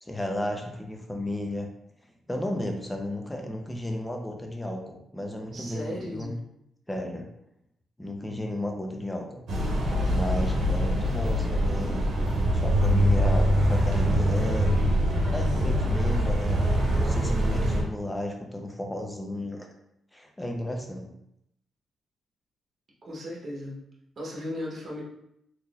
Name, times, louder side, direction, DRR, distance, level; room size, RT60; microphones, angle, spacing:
voice 1, 0.0-1.7 2.3-6.3 6.9-7.3 8.0-9.4 10.0-12.1 12.5-14.9 15.3-19.7 20.1-21.1, left 1 dB, 10° left, 2 dB, 0.6 m, -33 dB
voice 2, 5.5-6.4 23.0-23.8 24.2-25.0, left 1 dB, 45° right, -4 dB, 1.0 m, -36 dB
sound 1, 9.5-17.8, equal, 75° right, 0.9 m, -24 dB
3.6 x 2.9 x 2.4 m, 0.78 s
cardioid pair, 85°, 0 cm